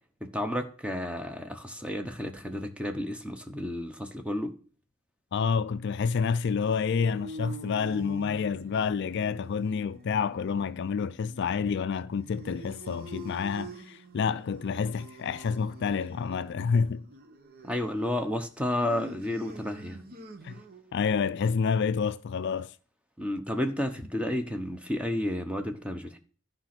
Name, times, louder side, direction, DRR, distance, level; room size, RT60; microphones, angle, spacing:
voice 1, 0.2-4.5 17.6-20.0 23.2-26.2, left 1 dB, 5° right, 0.9 m, -31 dB
voice 2, 5.3-17.1 20.4-20.6 20.9-22.7, left 6 dB, 55° left, 0.4 m, -28 dB
sound 1, 6.5-20.9, right 1 dB, 45° right, 1.0 m, -46 dB
11.5 x 5.2 x 5.9 m
head